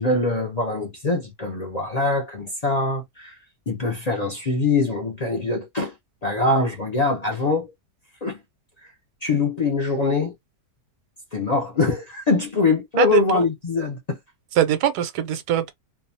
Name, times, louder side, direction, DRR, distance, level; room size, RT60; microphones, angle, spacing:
voice 1, 0.0-3.4 3.7-5.9 6.2-7.7 8.2-8.4 8.8-8.9 9.2-10.3 11.3-14.2, left 3 dB, 70° left, 0.3 m, -23 dB
voice 2, 13.0-13.4 14.6-15.7, right 11 dB, 90° right, 1.2 m, -22 dB
2.7 x 2.2 x 2.6 m
omnidirectional pair, 1.7 m